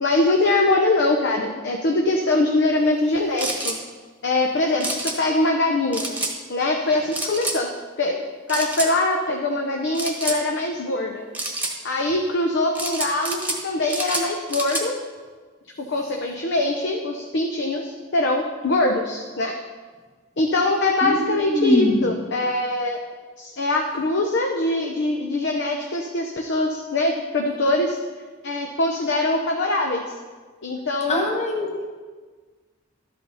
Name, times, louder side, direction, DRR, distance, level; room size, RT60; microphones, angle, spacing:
voice 1, 0.0-3.7 4.2-6.1 6.5-7.7 8.0-8.2 8.5-11.3 11.8-14.9 15.8-19.6 20.4-23.0 23.4-28.0 28.4-30.0 30.6-31.3, left 2 dB, 60° left, 2 dB, 0.8 m, -23 dB
sound 1, 3.4-3.8 4.8-5.2 5.9-6.3 7.1-7.6 8.5-8.9 9.9-10.4 11.3-11.7 12.8-13.6 13.9-14.9, right 2 dB, 10° right, 1.3 m, -28 dB
voice 2, 21.0-22.0 31.1-31.7, equal, 35° left, 0 dB, 1.5 m, -22 dB
12.5 x 8.3 x 4.1 m, 1.5 s
head